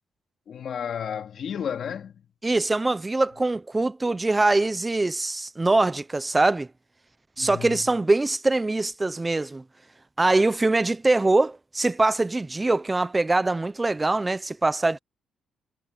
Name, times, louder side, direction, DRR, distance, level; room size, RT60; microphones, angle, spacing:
voice 1, 0.5-2.2 7.4-7.8, left 8 dB, 60° left, 2.5 m, -32 dB
voice 2, 2.4-6.7 7.4-9.6 10.2-15.0, right 2 dB, 20° right, 0.7 m, -23 dB
cardioid pair, 90°, 0 cm